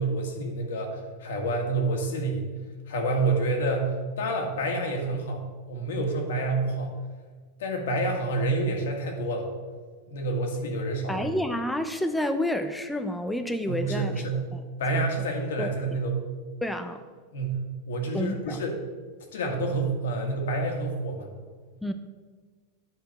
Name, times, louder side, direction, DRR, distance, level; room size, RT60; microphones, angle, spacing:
voice 1, 0.0-2.5 2.9-5.4 5.7-6.9 7.6-9.5 10.1-11.3 13.7-14.4 14.8-16.2 17.3-17.6 17.9-18.8 19.3-21.3, right 2 dB, 90° left, 2 dB, 1.8 m, -28 dB
voice 2, 11.1-14.1 14.5-14.6 14.9-15.0 15.6-15.7 16.6-17.0 18.1-18.6 21.8-21.9, left 1 dB, 5° left, 7 dB, 0.4 m, -29 dB
10.0 x 4.0 x 6.4 m, 1.5 s
supercardioid pair, 160°, 0 cm